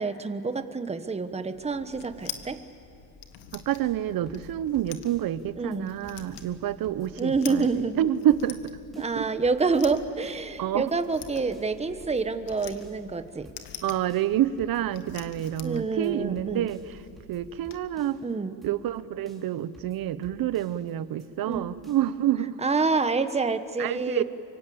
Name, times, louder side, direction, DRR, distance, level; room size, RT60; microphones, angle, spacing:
voice 1, 0.0-2.6 5.6-5.9 7.2-8.0 9.0-13.5 15.6-16.7 18.2-18.6 21.5-21.7 22.6-24.2, right 4 dB, 15° right, 10 dB, 1.1 m, -27 dB
sound 1, 1.5-17.8, left 9 dB, 90° left, 1.7 m, -46 dB
voice 2, 3.5-7.7 8.0-9.3 10.6-10.9 13.8-17.0 17.3-18.2 18.6-22.6 23.8-24.2, right 11 dB, 55° right, 15 dB, 1.0 m, -28 dB
sound 2, 3.8-5.4 5.7-5.8 6.0-8.0 8.3-8.7 8.9-10.6 10.9-11.0 11.2-13.2 13.5-13.8 14.1-15.8 16.0-16.1 16.4-18.3 18.6-19.0 19.3-20.9 21.2-21.3 21.5-22.1, right 1 dB, ahead, 4.1 m, -53 dB
24.5 x 24.5 x 8.6 m, 2.7 s
cardioid pair, 110°, 41 cm